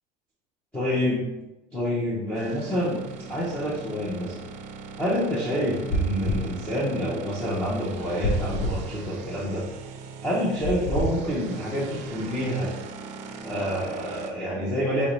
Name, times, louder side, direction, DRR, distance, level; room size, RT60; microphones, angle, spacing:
voice 1, 0.7-1.3 1.7-3.0 3.3-4.4 5.0-9.6 10.2-12.7 13.4-15.1, equal, 5° left, -7 dB, 0.6 m, -27 dB
sound 1, 2.3-14.3, right 5 dB, 45° right, 0.4 m, -40 dB
sound 2, 5.9-6.5 8.2-8.8 10.6-11.1, right 1 dB, 65° left, 0.9 m, -26 dB
4.1 x 3.8 x 3.0 m, 1.0 s
cardioid pair, 170°, 17 cm